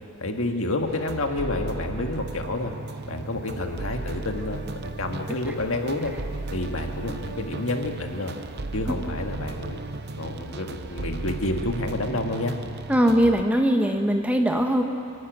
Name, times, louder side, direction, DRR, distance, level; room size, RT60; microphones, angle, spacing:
voice 1, 0.2-2.7 3.1-6.1 6.5-8.3 8.7-12.6, left 2 dB, 70° left, 4 dB, 1.8 m, -29 dB
sound 1, 0.9-13.4, right 3 dB, 50° right, 0.8 m, -35 dB
voice 2, 12.9-14.8, equal, 5° right, 3 dB, 1.2 m, -21 dB
26.5 x 12.0 x 9.2 m, 2.6 s
head